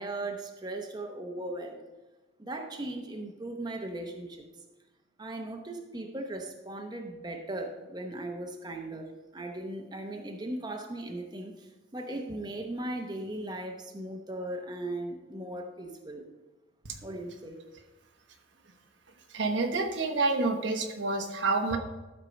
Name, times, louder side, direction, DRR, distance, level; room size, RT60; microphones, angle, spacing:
voice 1, 0.0-1.8 2.4-4.4 5.2-16.2 17.0-17.6, right 1 dB, 20° right, 3 dB, 0.8 m, -38 dB
voice 2, 19.3-21.8, right 3 dB, 75° right, 4 dB, 1.1 m, -28 dB
12.0 x 4.5 x 5.3 m, 1.1 s
head